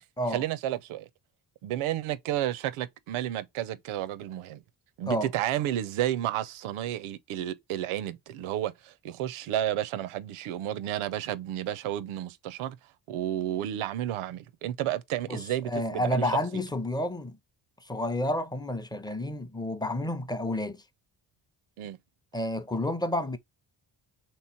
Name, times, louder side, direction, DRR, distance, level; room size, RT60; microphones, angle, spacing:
voice 1, 0.3-1.0 1.6-4.6 5.0-12.8 13.1-16.6 21.8-22.0, right 12 dB, 85° right, 0.6 m, -31 dB
voice 2, 15.3-17.4 17.8-20.8 22.3-23.4, left 1 dB, 10° left, 0.5 m, -30 dB
3.3 x 3.0 x 4.2 m
cardioid pair, 70°, 48 cm